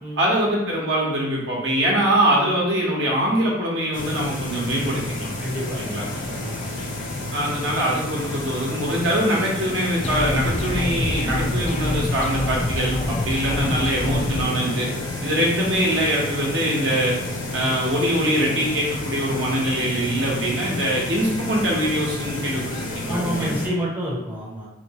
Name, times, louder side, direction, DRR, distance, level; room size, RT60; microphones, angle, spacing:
voice 1, 0.2-5.3 5.7-6.0 7.3-14.9 15.2-17.1 17.5-22.6 22.9-23.5, right 1 dB, 70° right, -4 dB, 1.0 m, -23 dB
sound 1, 3.9-23.7, left 2 dB, 90° left, 0.8 m, -31 dB
voice 2, 5.4-5.8 6.3-6.7 23.1-24.7, equal, 10° right, -6 dB, 0.6 m, -28 dB
sound 2, 10.0-14.4, left 2 dB, 35° left, 0.3 m, -26 dB
3.1 x 2.9 x 2.9 m, 0.97 s
head